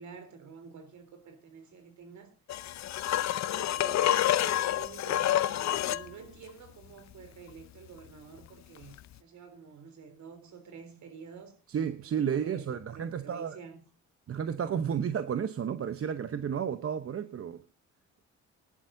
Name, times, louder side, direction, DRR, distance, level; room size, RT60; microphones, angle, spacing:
voice 1, 0.0-2.3 3.4-11.5 12.0-13.8 17.1-17.4, right 6 dB, 70° right, 3.6 m, -49 dB
sound 1, 2.5-6.1 9.0-9.1, left 12 dB, 65° left, 0.7 m, -28 dB
voice 2, 11.7-13.6 14.3-17.6, right 8 dB, 50° right, 0.9 m, -32 dB
19.5 x 11.0 x 2.7 m
cardioid pair, 90°, 30 cm